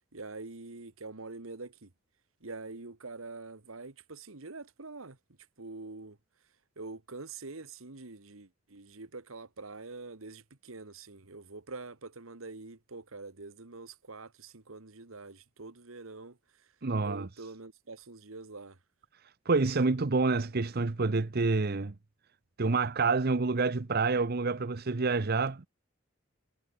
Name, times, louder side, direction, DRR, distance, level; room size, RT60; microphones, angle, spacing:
voice 1, 0.0-1.9 2.4-5.2 5.6-6.2 6.8-16.4 17.0-18.8, right 3 dB, 85° right, 1.7 m, -45 dB
voice 2, 16.8-17.3 19.5-21.9 22.6-25.7, right 3 dB, 50° right, 0.8 m, -28 dB
head